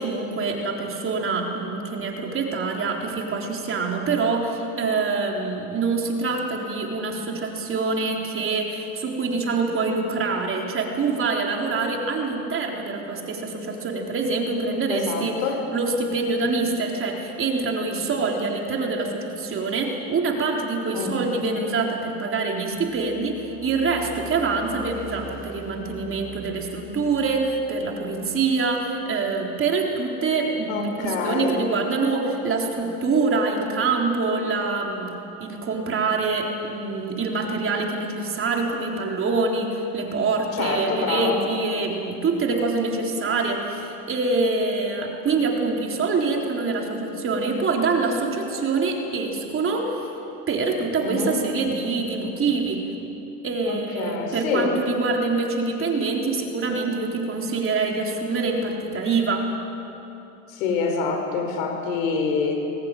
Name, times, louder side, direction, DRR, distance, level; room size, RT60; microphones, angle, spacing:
voice 1, 0.0-15.3 15.7-50.1 50.5-52.9 53.4-59.5, right 4 dB, 30° right, 0 dB, 3.9 m, -25 dB
voice 2, 14.9-15.6 20.9-21.3 30.7-31.6 40.5-41.4 51.0-51.4 53.6-54.7 60.5-62.7, left 4 dB, 85° left, 4 dB, 4.8 m, -26 dB
sound 1, 22.7-28.9, left 4 dB, 40° left, 2.1 m, -44 dB
21.5 x 18.5 x 9.2 m, 2.9 s
supercardioid pair, 115°, 39 cm